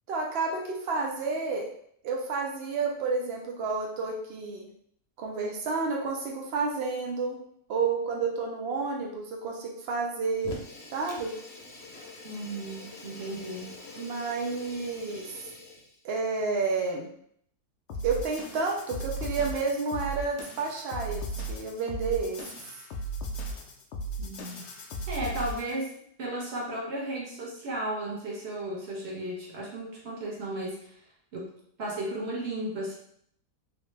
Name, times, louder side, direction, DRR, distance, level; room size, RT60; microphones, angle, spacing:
voice 1, 0.1-1.7 2.0-4.7 5.2-7.4 7.7-10.5 10.9-11.3 14.0-15.3 16.0-17.1 18.0-22.4, right 4 dB, 80° right, 0 dB, 0.5 m, -30 dB
Fire, 10.4-16.0, left 2 dB, 55° left, 0.8 m, -45 dB
voice 2, 12.2-13.7 24.2-24.7 25.1-25.9 26.2-31.0 31.3-31.5 31.8-32.9, right 1 dB, 45° right, -4 dB, 1.0 m, -34 dB
sound 1, 17.9-25.8, right 2 dB, 85° left, 0.6 m, -36 dB
3.2 x 2.4 x 3.1 m, 0.67 s
omnidirectional pair, 1.7 m